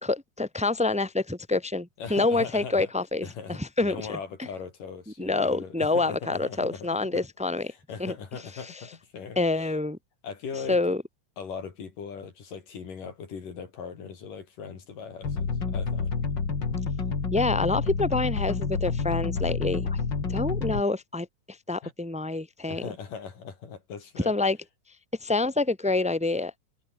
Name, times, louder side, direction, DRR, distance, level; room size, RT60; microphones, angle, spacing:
voice 1, 0.0-4.2 5.2-7.7 8.0-8.1 8.6-8.7 9.4-10.0 10.7-11.0 17.3-20.0 20.3-21.3 21.7-22.8 24.2-24.6 25.2-26.5, left 3 dB, ahead, 2.1 m, -27 dB
voice 2, 2.0-2.9 3.2-7.3 7.7-9.7 10.2-10.8 11.4-16.1 21.8-21.9 22.7-24.3, left 6 dB, 80° left, 5.4 m, -39 dB
sound 1, 15.2-20.8, left 5 dB, 35° left, 3.3 m, -28 dB
omnidirectional pair, 3.8 m